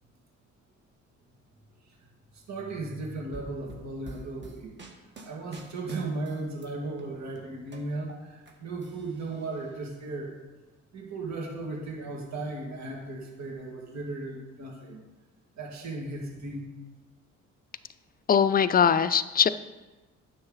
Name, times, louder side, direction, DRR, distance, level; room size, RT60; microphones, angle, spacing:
voice 1, 2.3-4.7 5.2-10.3 10.9-15.0 15.6-16.7, right 2 dB, 65° right, -1 dB, 2.1 m, -36 dB
sound 1, 3.3-6.7 7.0-8.5 8.8-9.7, right 3 dB, 35° right, 1.6 m, -47 dB
voice 2, 18.3-19.5, left 7 dB, 30° left, 13 dB, 0.4 m, -21 dB
9.7 x 6.8 x 4.0 m, 1.2 s
cardioid pair, 90°, 30 cm